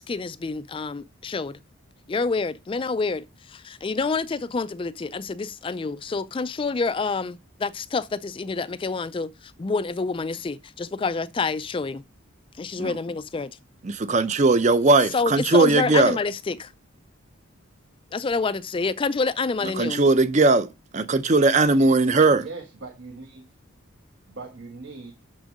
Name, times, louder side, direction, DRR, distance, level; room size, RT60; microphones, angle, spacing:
voice 1, 0.0-1.6 2.1-12.0 12.6-13.6 15.1-16.7 18.1-20.0, left 4 dB, 25° left, 0.3 m, -28 dB
voice 2, 13.8-16.2 19.8-22.5, right 3 dB, 35° right, 0.5 m, -19 dB
voice 3, 22.3-23.4 24.3-25.1, right 3 dB, 65° right, 1.2 m, -40 dB
6.3 x 6.2 x 5.0 m
head